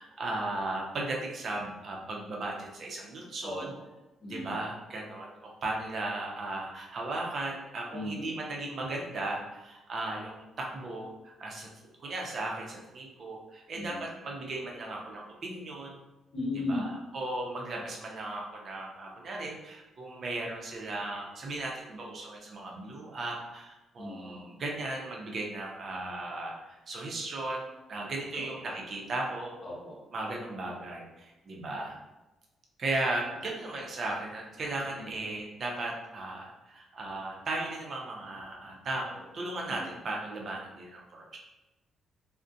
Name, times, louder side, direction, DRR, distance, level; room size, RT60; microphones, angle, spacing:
voice 1, 0.0-3.7 4.2-11.7 12.0-16.0 16.5-29.6 30.1-32.0 32.8-41.4, right 2 dB, 50° right, -1 dB, 0.6 m, -36 dB
voice 2, 4.2-4.6 7.9-8.3 13.7-14.0 16.3-16.9 24.0-24.5 28.4-28.7 29.6-30.0 34.9-35.1 39.7-39.9, left 2 dB, 50° left, -3 dB, 0.8 m, -36 dB
2.4 x 2.1 x 2.5 m, 1.0 s
cardioid pair, 90°, 0 cm